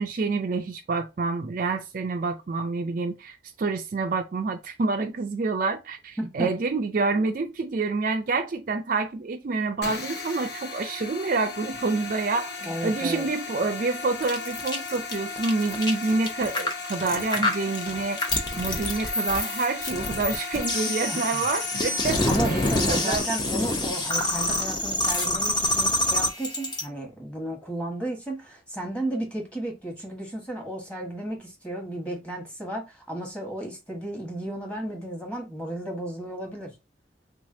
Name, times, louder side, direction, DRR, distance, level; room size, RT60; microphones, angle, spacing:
voice 1, 0.0-23.3, right 3 dB, 45° right, 0.4 m, -28 dB
voice 2, 6.2-6.5 12.6-13.3 21.1-21.4 22.3-36.7, right 1 dB, 5° left, 1.2 m, -33 dB
sound 1, 9.8-23.2, left 4 dB, 60° left, 0.8 m, -36 dB
sound 2, 14.2-26.8, left 1 dB, 25° left, 0.7 m, -27 dB
3.6 x 3.2 x 2.6 m
head